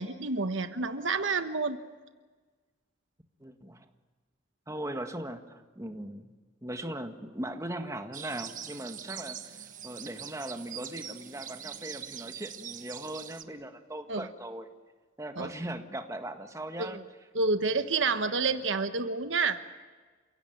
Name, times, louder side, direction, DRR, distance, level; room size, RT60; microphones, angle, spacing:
voice 1, 0.0-1.8 14.1-14.3 15.3-15.5 16.8-17.0 17.3-19.6, right 4 dB, 75° right, 9 dB, 1.3 m, -29 dB
voice 2, 3.4-3.9 4.7-6.3 6.6-14.7 15.2-17.0 18.3-18.5, right 1 dB, 15° right, 6 dB, 1.8 m, -39 dB
sound 1, 8.1-13.4, right 9 dB, 45° right, 1.3 m, -43 dB
29.0 x 17.0 x 9.4 m, 1.4 s
head